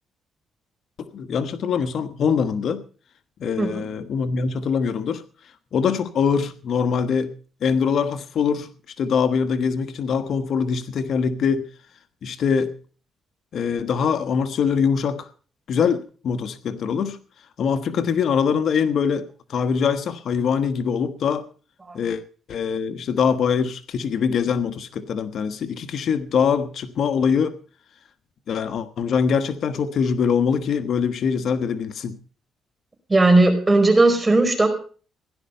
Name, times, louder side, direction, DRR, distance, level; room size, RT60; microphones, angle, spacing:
voice 1, 1.0-2.8 3.4-5.2 5.7-7.3 7.6-11.7 12.2-12.7 13.5-15.3 15.7-17.2 17.6-21.5 21.9-22.2 22.5-27.6 28.5-32.2, left 6 dB, 65° left, 1.3 m, -23 dB
voice 2, 33.1-34.7, right 2 dB, 20° right, 4.9 m, -17 dB
16.5 x 11.5 x 5.5 m
cardioid pair, 90°, 0 cm